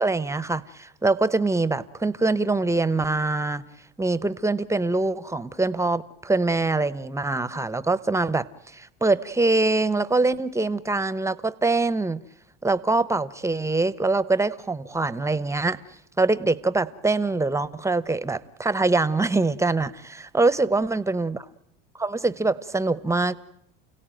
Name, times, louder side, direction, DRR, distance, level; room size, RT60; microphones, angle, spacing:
voice 1, 0.0-3.6 4.0-12.2 12.6-15.8 16.2-21.5 22.0-23.4, right 3 dB, 10° right, 17 dB, 0.9 m, -24 dB
29.5 x 17.0 x 9.2 m, 0.77 s
supercardioid pair, 100°, 33 cm